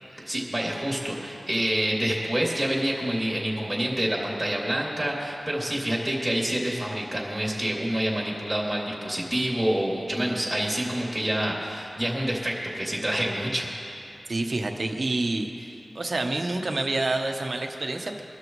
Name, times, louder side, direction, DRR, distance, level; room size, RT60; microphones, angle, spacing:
voice 1, 0.3-13.7, right 1 dB, 15° right, -3 dB, 2.9 m, -27 dB
voice 2, 14.3-18.2, right 2 dB, 50° right, 3 dB, 1.1 m, -28 dB
23.0 x 12.5 x 3.2 m, 2.7 s
wide cardioid pair, 100°, 0 cm